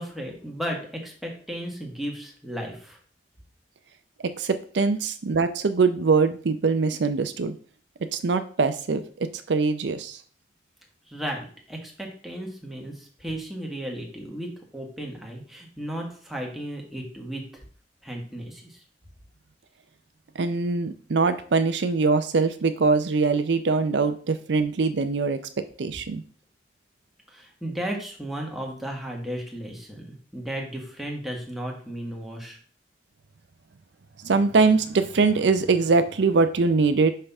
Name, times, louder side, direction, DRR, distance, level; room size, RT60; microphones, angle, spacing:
voice 1, 0.0-3.0 11.1-17.4 18.0-18.8 27.3-32.6, right 1 dB, ahead, -1 dB, 1.4 m, -34 dB
voice 2, 4.2-7.5 8.1-10.2 20.4-26.2 34.2-37.1, right 4 dB, 75° right, 9 dB, 0.5 m, -23 dB
5.6 x 5.4 x 3.5 m, 0.43 s
head